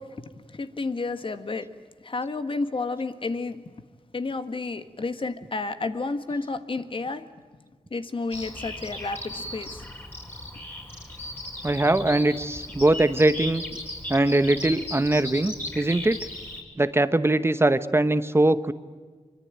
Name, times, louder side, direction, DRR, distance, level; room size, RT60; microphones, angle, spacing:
voice 1, 0.0-1.7 2.0-3.6 4.1-7.3 7.9-9.9, left 3 dB, 45° left, 10 dB, 1.6 m, -31 dB
Bird vocalization bird call bird song, 8.3-16.6, left 1 dB, 20° left, 5.9 m, -37 dB
voice 2, 11.6-13.6 14.1-16.2 16.8-18.7, right 2 dB, 20° right, 12 dB, 0.9 m, -21 dB
24.5 x 24.0 x 9.1 m, 1.5 s
wide cardioid pair, 90°, 12 cm